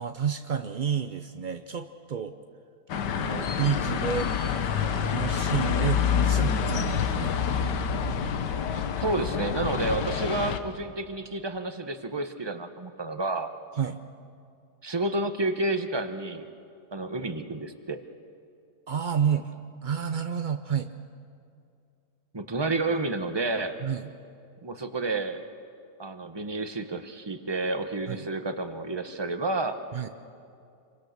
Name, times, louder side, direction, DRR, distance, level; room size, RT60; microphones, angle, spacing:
voice 1, 0.0-2.3 3.2-4.3 4.6-7.4 13.7-14.0 18.9-19.5 19.8-20.9 23.8-24.1 28.1-28.3 29.9-30.1, right 8 dB, 70° right, 8 dB, 0.4 m, -30 dB
sound 1, 2.9-10.6, left 7 dB, 90° left, 1.7 m, -27 dB
voice 2, 9.0-13.5 14.8-16.5 16.9-18.0 22.3-23.8 24.6-25.4 26.0-29.8 30.0-30.1, right 2 dB, 20° right, 8 dB, 0.9 m, -30 dB
27.0 x 24.0 x 6.6 m, 2.5 s
omnidirectional pair, 1.8 m